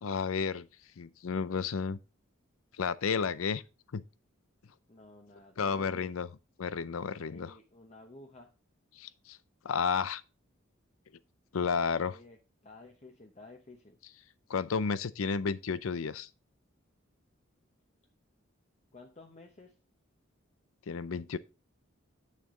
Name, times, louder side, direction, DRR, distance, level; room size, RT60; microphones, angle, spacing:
voice 1, 0.0-0.7 1.0-2.0 2.8-3.6 3.9-4.0 5.6-6.3 6.6-7.5 9.0-9.4 9.6-10.2 11.5-12.2 14.5-16.3 20.9-21.4, left 5 dB, 90° left, 0.5 m, -32 dB
voice 2, 4.9-6.1 7.2-8.5 12.1-12.4 12.6-14.0 18.9-19.7, left 2 dB, 35° left, 0.9 m, -53 dB
8.5 x 6.7 x 3.8 m
head